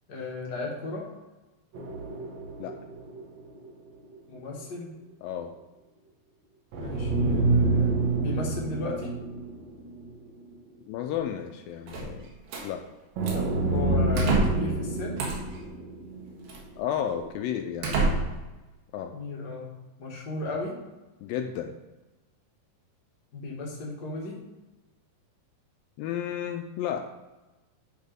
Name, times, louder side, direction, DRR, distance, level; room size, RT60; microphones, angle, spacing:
voice 1, 0.1-1.1 4.3-4.9 6.8-9.2 13.3-15.2 19.1-20.7 23.3-24.4, left 2 dB, 60° left, -2 dB, 1.0 m, -35 dB
sound 1, 1.7-3.8 4.1-4.2 6.7-10.1 10.5-10.6 13.2-16.5, right 2 dB, 65° right, 2.0 m, -28 dB
voice 2, 5.2-5.5 10.9-12.3 12.6-12.8 16.8-18.4 18.9-19.2 21.2-21.8 26.0-27.1, left 9 dB, 80° left, 5 dB, 2.2 m, -32 dB
sound 2, 11.9-12.7 13.2-13.5 14.1-14.7 15.2-15.6 16.5-16.6 17.2-17.3 17.8-18.5, right 3 dB, 85° right, 3.5 m, -28 dB
10.5 x 4.0 x 5.1 m, 1.1 s
omnidirectional pair, 4.4 m